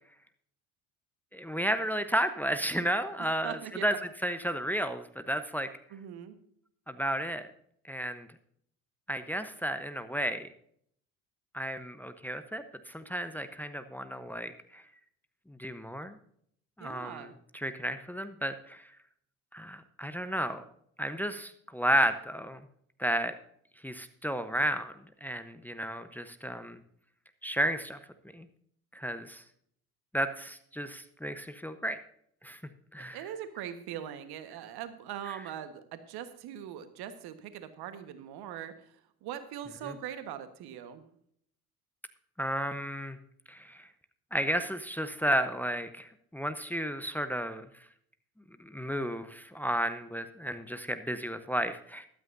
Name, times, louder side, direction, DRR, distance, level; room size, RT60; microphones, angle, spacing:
voice 1, 1.3-3.9 4.2-5.7 6.9-7.5 7.8-8.3 9.1-10.5 11.5-14.8 15.5-16.2 16.8-17.3 17.5-18.9 19.5-20.6 21.0-22.6 23.0-23.3 23.8-24.9 25.2-26.8 27.4-28.0 28.3-28.5 28.9-29.4 30.1-32.0 32.4-32.6 32.9-33.2 42.4-43.2 43.5-43.9 44.3-47.7 48.6-52.1, equal, 5° left, 10 dB, 1.0 m, -32 dB
voice 2, 3.4-3.8 5.9-6.4 16.8-17.3 33.1-41.1, right 10 dB, 60° right, 10 dB, 1.5 m, -41 dB
14.0 x 12.5 x 2.7 m, 0.67 s
hypercardioid pair, 60°, 43 cm